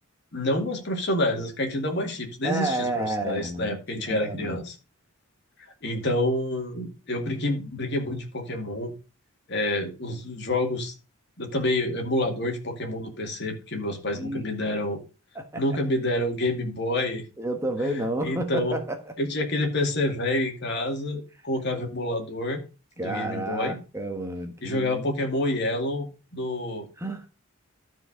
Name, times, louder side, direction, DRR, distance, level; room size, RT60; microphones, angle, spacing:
voice 1, 0.3-4.8 5.8-8.9 9.5-10.9 11.4-15.0 15.5-17.2 17.8-18.8 19.2-22.6 23.0-23.8 24.6-26.1 26.3-26.9, left 1 dB, 50° left, 3 dB, 2.2 m, -28 dB
voice 2, 2.4-4.6 14.1-14.4 15.3-15.6 17.4-19.0 23.0-25.0 27.0-27.2, right 1 dB, 10° right, 4 dB, 1.2 m, -30 dB
13.0 x 4.7 x 4.9 m, 0.31 s
head